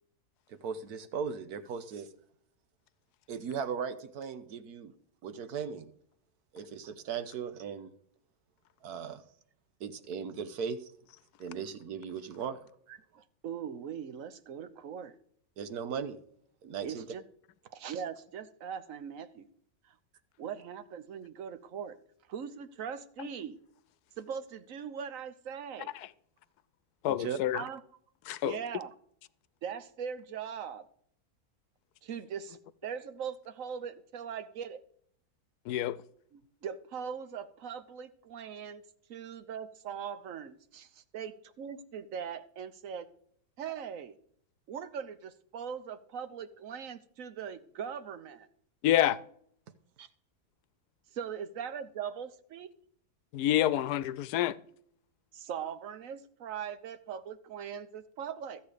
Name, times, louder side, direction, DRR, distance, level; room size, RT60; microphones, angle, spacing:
voice 1, 0.5-2.1 3.3-4.9 5.2-5.9 6.5-7.9 8.8-9.2 9.8-10.9 11.4-12.6 15.6-16.2 16.6-17.1 27.1-27.4, right 6 dB, 80° right, 1.4 m, -37 dB
voice 2, 12.9-15.1 16.8-17.2 17.7-19.5 19.8-19.9 20.4-22.0 22.3-23.6 24.2-25.9 27.5-27.8 28.4-28.9 29.6-30.8 32.0-34.8 36.3-38.8 39.1-43.1 43.6-44.1 44.7-48.5 51.1-52.7 55.3-58.6, right 7 dB, 60° right, 1.2 m, -40 dB
voice 3, 27.0-27.6 28.3-28.5 35.7-36.0 48.8-49.2 53.3-54.6, left 12 dB, 90° left, 1.2 m, -27 dB
14.0 x 8.1 x 5.0 m
omnidirectional pair, 1.6 m